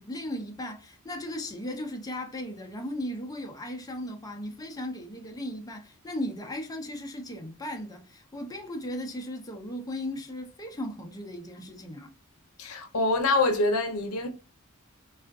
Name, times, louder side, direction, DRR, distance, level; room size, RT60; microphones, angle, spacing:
voice 1, 0.0-12.1, left 1 dB, 15° left, 0.6 m, -36 dB
voice 2, 12.6-14.3, left 2 dB, 85° left, 0.7 m, -25 dB
3.5 x 2.4 x 2.3 m
head